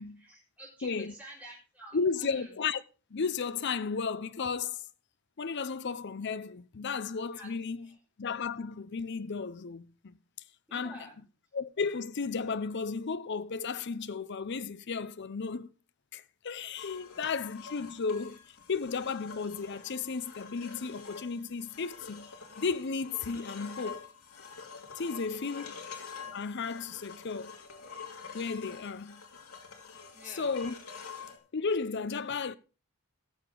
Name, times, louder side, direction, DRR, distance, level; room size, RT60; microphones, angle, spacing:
voice 1, 0.3-2.5 7.3-7.5 7.8-7.9 10.7-11.2 30.1-30.5, right 1 dB, 5° right, 4.7 m, -49 dB
voice 2, 0.8-1.1 1.9-2.8 3.1-4.8 5.4-10.2 10.7-11.1 11.5-15.7 16.1-24.1 25.0-25.8 26.3-27.6 28.3-29.2 30.3-30.8 31.5-32.6, left 5 dB, 50° left, 0.6 m, -34 dB
sound 1, 16.8-31.4, left 5 dB, 85° left, 2.4 m, -47 dB
17.5 x 6.8 x 3.8 m
head